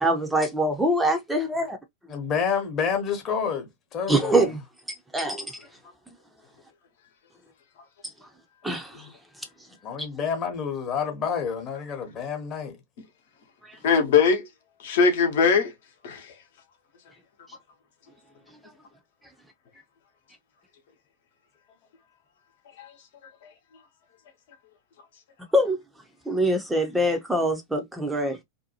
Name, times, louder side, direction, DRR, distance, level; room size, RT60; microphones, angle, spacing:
voice 1, 0.0-1.8 4.1-4.6 5.1-5.5 8.6-9.1 10.0-10.1 13.7-13.8 25.5-25.8 26.3-28.4, right 1 dB, 5° right, 0.6 m, -24 dB
voice 2, 2.1-4.5 9.8-12.8, left 6 dB, 30° left, 1.0 m, -29 dB
voice 3, 13.8-14.5 14.8-15.7 16.0-16.3 22.8-22.9, left 5 dB, 55° left, 0.9 m, -21 dB
2.7 x 2.2 x 2.7 m
figure-of-eight pair, 90°, 0 cm